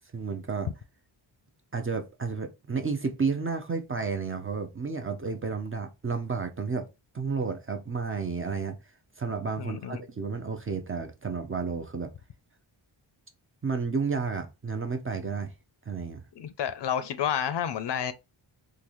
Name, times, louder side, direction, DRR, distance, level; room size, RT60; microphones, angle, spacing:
voice 1, 0.1-0.7 1.7-6.9 7.1-8.8 9.2-12.1 13.6-15.5 15.9-16.2, right 5 dB, 30° right, 0.4 m, -31 dB
voice 2, 9.6-10.0 16.4-18.1, left 9 dB, 60° left, 0.5 m, -30 dB
3.8 x 2.4 x 3.0 m
wide cardioid pair, 130°, 48 cm